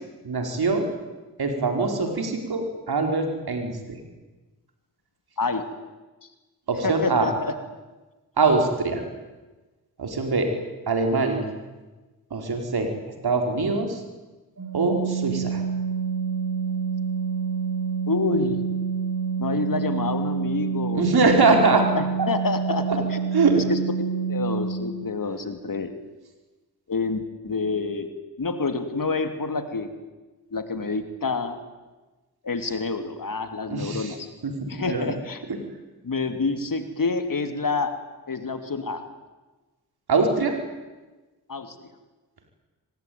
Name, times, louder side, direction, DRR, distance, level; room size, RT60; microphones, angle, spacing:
voice 1, 0.2-0.9 1.4-4.0 6.7-7.3 8.4-9.0 10.0-10.5 10.9-11.5 12.3-12.9 13.2-14.0 14.7-15.6 20.9-21.8 22.9-23.0 23.3-23.6 33.7-34.1 34.4-35.1 40.1-40.5, right 3 dB, 70° right, 4 dB, 4.7 m, -23 dB
voice 2, 6.8-7.6 18.1-18.6 19.4-22.8 23.1-23.2 23.5-25.9 26.9-28.1 28.4-29.9 30.5-31.6 32.4-34.3 34.7-35.4 36.0-37.9 38.3-39.1 41.5-41.9, left 4 dB, 55° left, 8 dB, 3.0 m, -28 dB
Organ, 14.6-25.2, right 6 dB, 50° right, 4.6 m, -27 dB
24.5 x 19.5 x 9.5 m, 1.2 s
cardioid pair, 40°, 39 cm